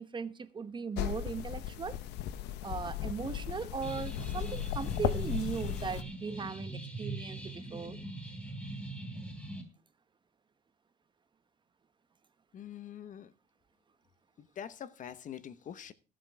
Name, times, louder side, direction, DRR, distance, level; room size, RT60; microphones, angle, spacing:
voice 1, 0.0-2.0 2.6-8.0, right 5 dB, 30° right, 1.0 m, -38 dB
sound 1, 1.0-6.0, left 12 dB, 90° left, 0.9 m, -36 dB
sound 2, 3.8-9.6, right 2 dB, 5° left, 3.3 m, -42 dB
voice 2, 12.5-13.3 14.4-15.9, left 9 dB, 50° left, 0.9 m, -45 dB
15.0 x 7.7 x 4.8 m
cardioid pair, 110°, 17 cm